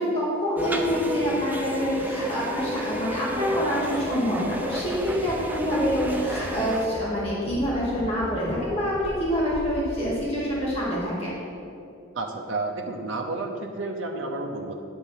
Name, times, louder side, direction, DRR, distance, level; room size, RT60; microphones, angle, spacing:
voice 1, 0.0-11.3, equal, 30° left, -8 dB, 2.0 m, -26 dB
sound 1, 0.6-6.9, equal, 10° right, 0.5 m, -32 dB
Walk footsteps, 4.6-10.7, equal, 60° left, 1.0 m, -40 dB
voice 2, 12.1-14.7, right 2 dB, 60° right, 1 dB, 0.8 m, -31 dB
10.0 x 4.0 x 7.3 m, 2.6 s
head